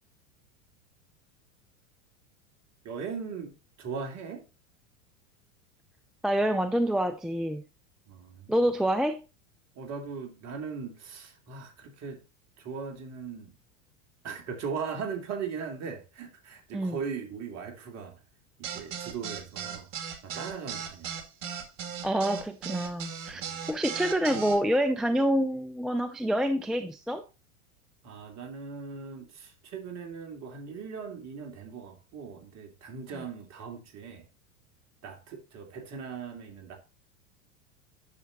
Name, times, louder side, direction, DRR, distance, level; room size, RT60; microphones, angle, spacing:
voice 1, 2.8-4.5 8.1-8.6 9.7-12.2 12.6-13.6 14.2-18.2 18.6-19.9 20.2-21.2 23.3-23.6 28.0-34.2 35.0-36.8, right 6 dB, 40° right, 2.9 m, -39 dB
voice 2, 6.2-7.6 8.5-9.2 16.7-17.0 22.0-27.2 33.2-33.3, equal, ahead, 0.4 m, -27 dB
sound 1, 18.6-24.6, right 7 dB, 60° right, 2.3 m, -37 dB
10.5 x 6.8 x 2.6 m
hypercardioid pair, 100°, 40 cm